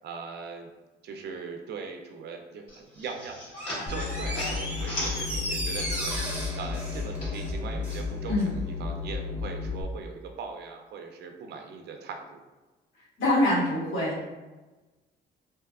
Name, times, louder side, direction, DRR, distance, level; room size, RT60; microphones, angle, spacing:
voice 1, 0.0-0.7 1.0-6.3 6.5-12.4, right 5 dB, 55° right, 3 dB, 0.4 m, -40 dB
sound 1, 2.7-6.3 6.6-8.0, left 1 dB, 65° left, 1.2 m, -38 dB
Door, 3.5-8.1 8.4-8.5, equal, 10° right, 1.0 m, -36 dB
sound 2, 3.9-9.8, left 4 dB, 30° left, 0.5 m, -33 dB
voice 2, 13.2-14.2, left 1 dB, 85° left, -9 dB, 1.5 m, -24 dB
2.6 x 2.3 x 2.2 m, 1.2 s
cardioid pair, 90°, 20 cm